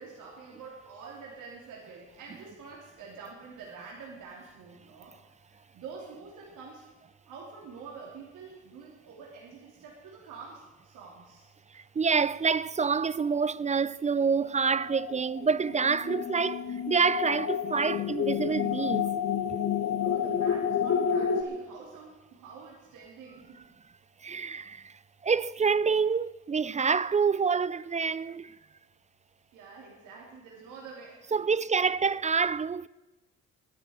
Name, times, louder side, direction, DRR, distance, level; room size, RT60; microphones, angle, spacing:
voice 1, 0.0-6.8 7.3-11.5 19.8-23.7 29.5-31.4, right 5 dB, 85° right, 3.2 m, -47 dB
voice 2, 11.7-19.0 19.5-19.6 24.2-24.9 25.2-28.6 31.3-32.9, right 5 dB, 25° right, 0.4 m, -27 dB
sound 1, 14.6-21.4, left 8 dB, 65° left, 1.9 m, -30 dB
12.0 x 10.0 x 9.6 m
cardioid pair, 90°, 30 cm